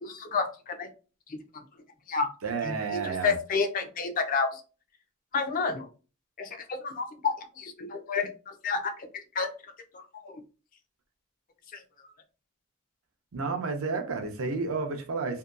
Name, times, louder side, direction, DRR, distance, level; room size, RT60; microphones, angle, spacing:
voice 1, 0.0-0.9 1.3-1.4 2.1-2.3 2.6-4.6 5.3-5.9 6.4-9.1 9.4-9.5 9.9-10.4 11.7-11.8, left 4 dB, 40° left, 0.4 m, -30 dB
voice 2, 2.4-3.3 13.3-15.4, right 4 dB, 70° right, 0.5 m, -31 dB
2.7 x 2.2 x 2.3 m
head